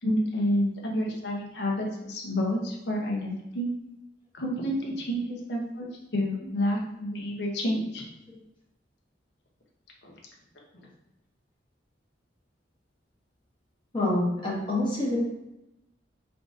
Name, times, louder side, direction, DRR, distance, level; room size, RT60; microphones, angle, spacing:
voice 1, 0.0-3.7 4.3-8.0 10.0-10.1, equal, 65° left, -1 dB, 0.7 m, -29 dB
voice 2, 13.9-15.2, left 1 dB, 25° left, -5 dB, 1.0 m, -26 dB
3.6 x 2.5 x 3.6 m, 0.90 s
head